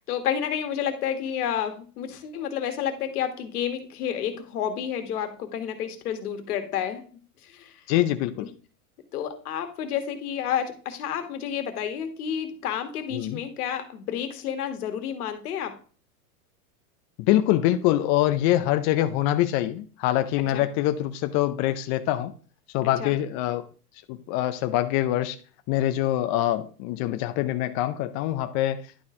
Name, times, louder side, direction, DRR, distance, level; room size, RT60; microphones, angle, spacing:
voice 1, 0.0-7.0 7.4-7.8 8.4-8.5 9.1-15.8 20.5-20.6 23.0-23.1, left 9 dB, 70° left, 1.6 m, -30 dB
voice 2, 7.9-8.5 13.1-13.4 17.2-22.3 22.7-23.6 24.1-25.4 25.7-28.8, left 13 dB, 35° left, 0.5 m, -24 dB
11.0 x 4.1 x 3.7 m
hypercardioid pair, 110°, 46 cm